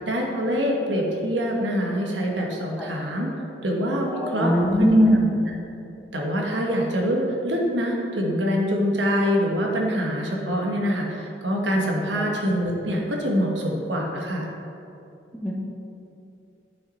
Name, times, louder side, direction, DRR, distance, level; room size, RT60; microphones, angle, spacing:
voice 1, 0.1-3.3 3.6-4.5 6.1-14.5, equal, 90° right, -1 dB, 1.3 m, -25 dB
voice 2, 4.1-5.4 12.2-12.3 15.3-15.5, equal, 5° left, -4 dB, 1.0 m, -20 dB
8.7 x 5.7 x 4.1 m, 2.7 s
head